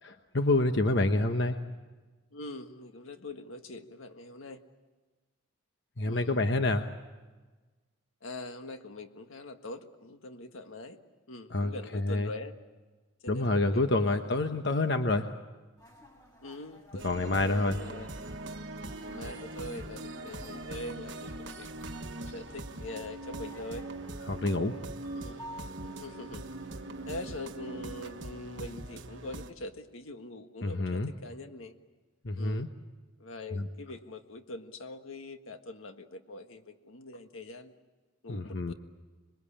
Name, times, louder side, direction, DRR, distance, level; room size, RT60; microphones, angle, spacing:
voice 1, 0.3-1.6 6.0-6.9 11.5-12.3 13.3-15.3 17.0-17.8 24.3-24.8 30.6-31.1 32.2-32.7 33.5-33.7 38.3-38.7, left 2 dB, 55° left, 7 dB, 1.0 m, -27 dB
voice 2, 2.3-4.6 6.0-6.4 8.2-11.0 11.3-12.6 13.2-14.6 16.4-18.1 19.0-21.7 22.3-23.9 25.1-25.4 26.0-26.4 27.1-31.8 32.3-32.7 33.2-37.7 38.2-38.7, left 2 dB, 80° left, 7 dB, 1.6 m, -43 dB
sound 1, 15.8-27.3, equal, 15° left, 6.3 m, -53 dB
sound 2, 17.0-29.5, right 2 dB, 60° right, 1.4 m, -41 dB
26.5 x 21.5 x 8.7 m, 1.3 s
head